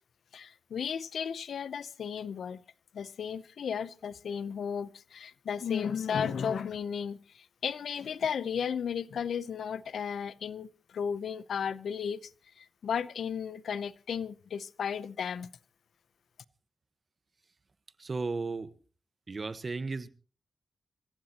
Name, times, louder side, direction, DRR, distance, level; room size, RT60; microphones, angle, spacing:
voice 1, 0.3-2.6 2.9-12.3 12.6-15.5, left 7 dB, 85° left, 0.7 m, -34 dB
voice 2, 18.0-18.7 19.3-20.1, right 3 dB, 45° right, 1.2 m, -34 dB
26.0 x 15.0 x 2.9 m
cardioid pair, 60°, 0 cm